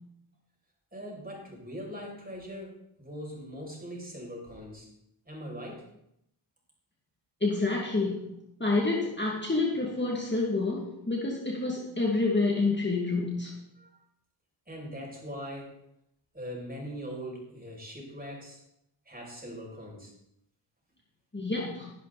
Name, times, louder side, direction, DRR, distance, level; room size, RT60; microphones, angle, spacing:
voice 1, 0.9-4.9 5.3-5.8 13.8-14.0 14.7-15.8 16.3-18.6 19.1-20.1, equal, 20° right, -2 dB, 7.0 m, -41 dB
voice 2, 7.4-8.3 8.6-13.5 21.3-21.9, left 3 dB, 25° left, -2 dB, 2.6 m, -28 dB
18.0 x 12.0 x 4.3 m, 0.76 s
wide cardioid pair, 75°, 44 cm